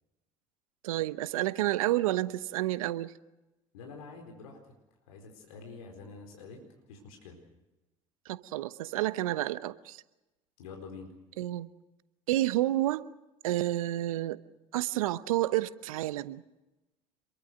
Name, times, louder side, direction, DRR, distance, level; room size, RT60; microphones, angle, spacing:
voice 1, 0.8-3.1 8.3-10.0 11.4-11.7 12.3-13.1 13.4-14.4 14.7-16.4, right 15 dB, 80° right, 15 dB, 1.0 m, -30 dB
voice 2, 3.7-4.6 5.1-6.6 6.9-7.4 10.6-11.1, left 4 dB, 80° left, 3 dB, 4.5 m, -46 dB
27.5 x 23.0 x 6.5 m, 1.0 s
hypercardioid pair, 65°, 17 cm